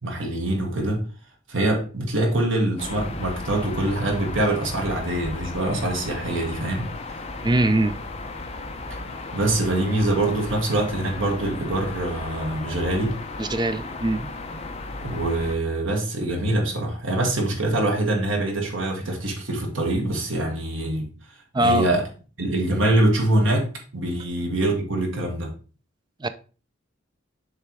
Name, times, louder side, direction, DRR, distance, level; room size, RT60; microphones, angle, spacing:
voice 1, 0.0-1.0 1.5-7.2 9.3-13.2 15.0-21.1 21.6-22.1 22.4-25.5, right 1 dB, 70° right, 1.7 m, -24 dB
sound 1, 2.8-15.6, left 2 dB, 30° left, 0.7 m, -35 dB
voice 2, 7.4-8.0 13.4-14.3 21.5-21.9 26.2-26.3, right 1 dB, 20° right, 0.4 m, -22 dB
6.7 x 3.4 x 4.6 m
head